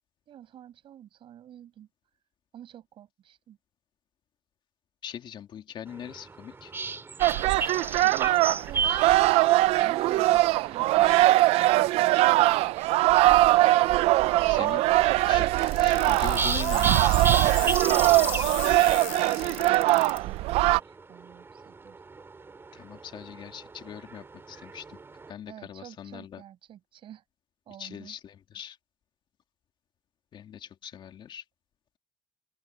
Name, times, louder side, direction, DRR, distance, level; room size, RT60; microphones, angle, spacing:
voice 1, 0.3-1.9 2.5-3.6 7.6-9.0 9.6-12.2 18.8-22.0 23.2-23.3 25.5-27.2 27.7-28.2, right 11 dB, 55° right, 7.7 m, -48 dB
voice 2, 5.0-6.7 14.4-14.8 15.3-15.5 15.8-17.5 22.7-25.0 25.3-26.4 27.8-28.8 30.3-31.4, left 9 dB, 50° left, 2.5 m, -41 dB
sound 1, 5.9-25.3, right 4 dB, 25° right, 2.7 m, -36 dB
sound 2, 7.2-20.8, right 17 dB, 80° right, 0.6 m, -22 dB
sound 3, 15.6-20.2, left 17 dB, 85° left, 3.6 m, -37 dB
open air
cardioid pair, 110°, 10 cm